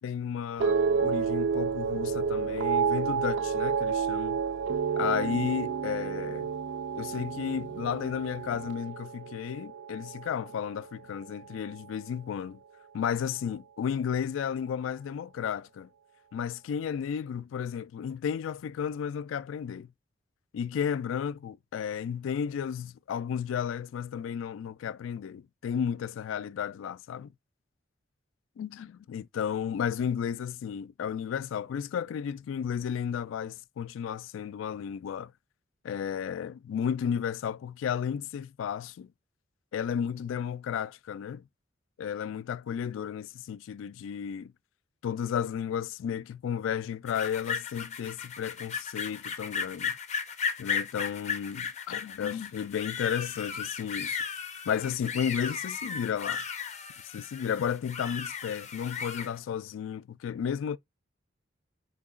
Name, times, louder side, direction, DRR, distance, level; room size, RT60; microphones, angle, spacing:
voice 1, 0.0-4.4 5.0-6.5 6.9-12.6 12.9-15.9 16.3-19.9 20.5-27.3 28.6-35.3 35.8-39.1 39.7-41.4 42.0-44.5 45.0-50.0 50.6-54.2 54.7-56.4 57.1-60.8, left 8 dB, 90° left, 0.3 m, -33 dB
sound 1, 0.6-11.0 11.3-11.8, right 6 dB, 75° right, 0.4 m, -30 dB
sound 2, 47.1-59.3, left 6 dB, 35° left, 0.5 m, -35 dB
6.2 x 2.9 x 2.4 m
head